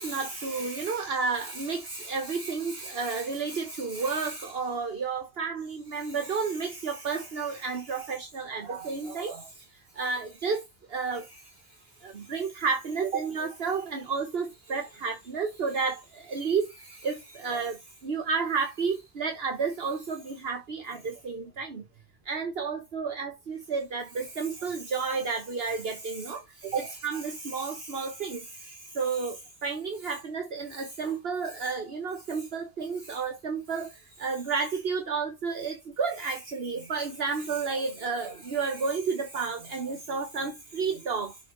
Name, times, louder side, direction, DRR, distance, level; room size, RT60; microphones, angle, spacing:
voice 1, 0.0-21.8 22.2-41.5, right 5 dB, 65° right, 1.5 m, -31 dB
7.3 x 4.2 x 5.4 m
omnidirectional pair, 1.1 m